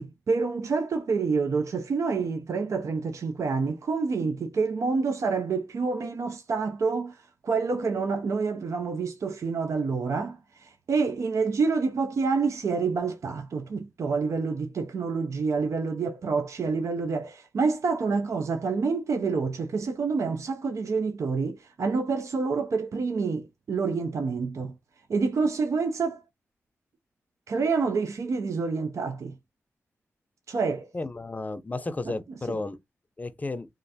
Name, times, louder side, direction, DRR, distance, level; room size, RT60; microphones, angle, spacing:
voice 1, 0.0-24.7 25.1-26.2 27.5-29.3 30.5-30.9 32.0-32.6, right 4 dB, 65° right, 0.4 m, -28 dB
voice 2, 30.9-32.8 33.2-33.7, left 2 dB, 30° left, 0.5 m, -33 dB
3.1 x 2.5 x 2.7 m
cardioid pair, 55°, 6 cm